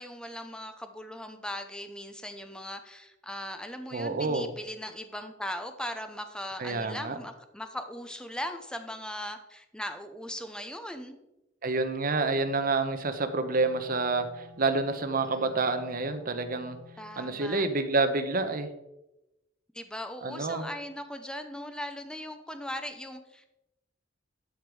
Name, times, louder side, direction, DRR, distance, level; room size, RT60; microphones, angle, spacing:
voice 1, 0.0-11.2 15.3-15.6 17.0-17.7 19.7-23.5, left 1 dB, 5° left, 8 dB, 0.7 m, -39 dB
voice 2, 3.9-4.5 6.6-7.2 11.6-16.8 17.2-18.7 20.2-20.7, right 3 dB, 45° right, 8 dB, 0.9 m, -28 dB
Wind instrument woodwind instrument, 12.1-17.3, left 2 dB, 15° right, 3.2 m, -53 dB
11.5 x 5.2 x 4.7 m, 0.93 s
head